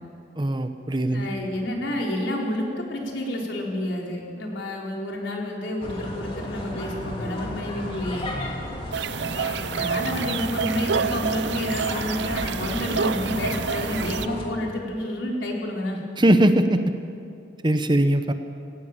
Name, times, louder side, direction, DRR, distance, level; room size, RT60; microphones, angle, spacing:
voice 1, 0.4-1.3 16.2-17.0 17.6-18.3, right 1 dB, 25° right, 9 dB, 0.9 m, -20 dB
voice 2, 1.1-8.3 9.8-16.0, left 1 dB, 75° left, -1 dB, 3.9 m, -29 dB
sound 1, 5.8-14.5, left 1 dB, 30° left, 2.7 m, -33 dB
sound 2, 8.9-14.3, right 6 dB, 65° right, 0.5 m, -28 dB
18.0 x 17.0 x 8.9 m, 2.5 s
head